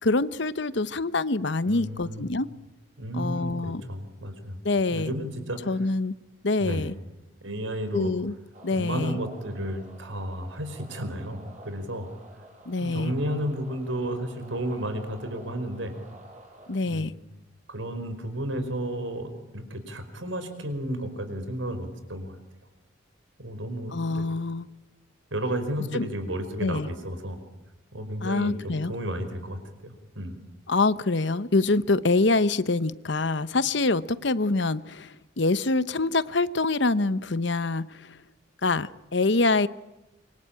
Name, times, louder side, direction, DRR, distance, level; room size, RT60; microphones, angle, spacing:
voice 1, 0.0-2.5 3.1-3.8 4.6-5.1 5.7-6.1 6.4-6.9 7.9-8.3 8.6-9.2 12.7-13.1 16.7-17.1 23.9-24.7 25.9-26.1 26.6-26.9 28.2-28.9 30.7-38.2 38.6-39.7, left 3 dB, 60° left, 16 dB, 0.9 m, -25 dB
voice 2, 1.6-2.6 3.0-4.6 4.9-5.9 6.6-6.9 7.4-8.1 8.7-12.1 12.8-16.0 16.8-17.1 17.7-22.4 23.4-24.2 25.3-27.4 27.9-30.3, right 1 dB, 75° right, 9 dB, 5.0 m, -32 dB
sound 1, 8.5-16.8, right 1 dB, 35° right, 7.8 m, -50 dB
26.0 x 24.5 x 8.9 m, 0.96 s
head